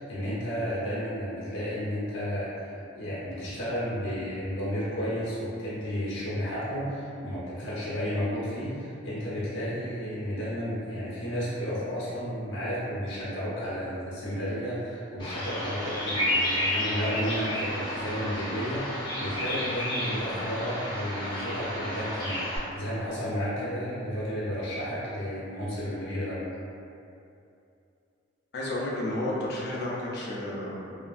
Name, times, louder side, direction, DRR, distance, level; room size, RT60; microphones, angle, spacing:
voice 1, 0.0-26.4 30.9-31.0, equal, 85° left, -9 dB, 0.8 m, -32 dB
Bird vocalization bird call bird song, 15.2-22.6, equal, 25° left, 0.8 m, -31 dB
voice 2, 28.5-30.8, left 1 dB, 60° left, -5 dB, 0.5 m, -31 dB
2.8 x 2.4 x 2.4 m, 2.6 s
head